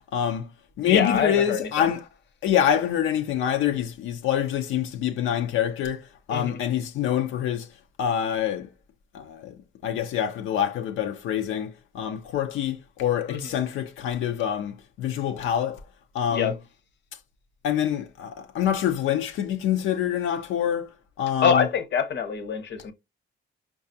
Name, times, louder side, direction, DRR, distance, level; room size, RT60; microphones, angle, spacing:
voice 1, 0.1-0.5 0.8-2.1 2.4-7.7 8.0-8.7 9.1-9.6 9.8-15.8 16.1-16.5 17.6-20.9 21.2-21.7, left 9 dB, 80° left, 0.5 m, -26 dB
voice 2, 0.8-1.9 6.3-6.6 13.3-13.4 16.3-16.5 21.4-22.9, left 7 dB, 60° left, 0.9 m, -25 dB
4.7 x 2.3 x 2.6 m
cardioid pair, 90°, 20 cm